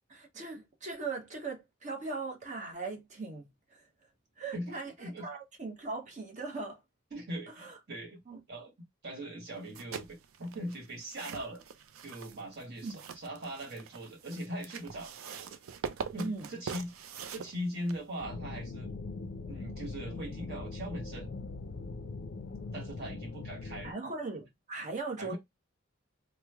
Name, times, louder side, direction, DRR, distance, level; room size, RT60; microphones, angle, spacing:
voice 1, 0.1-3.9 4.4-6.8 7.6-7.8 8.3-8.4 12.8-13.0 16.2-16.5 23.8-25.4, right 3 dB, 35° right, 0.7 m, -39 dB
voice 2, 4.5-5.3 7.1-8.2 8.5-8.7 9.0-11.6 12.0-15.1 16.1-16.9 17.3-18.9 19.5-21.3 22.7-23.9 25.2-25.4, equal, 55° right, 1.4 m, -40 dB
sound 1, 9.6-18.2, right 6 dB, 80° right, 0.4 m, -44 dB
sound 2, 18.2-23.9, left 3 dB, 50° left, 0.4 m, -41 dB
3.1 x 2.0 x 3.3 m
head